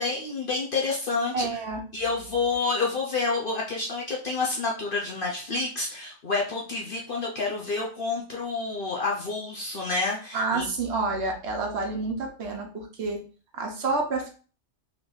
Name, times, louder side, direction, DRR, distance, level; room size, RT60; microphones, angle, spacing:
voice 1, 0.0-1.5 1.9-10.7, left 3 dB, 50° left, -2 dB, 0.8 m, -28 dB
voice 2, 1.3-1.8 10.3-13.2 13.5-14.3, right 3 dB, 65° right, 2 dB, 1.1 m, -29 dB
3.5 x 2.6 x 3.8 m, 0.39 s
omnidirectional pair, 1.3 m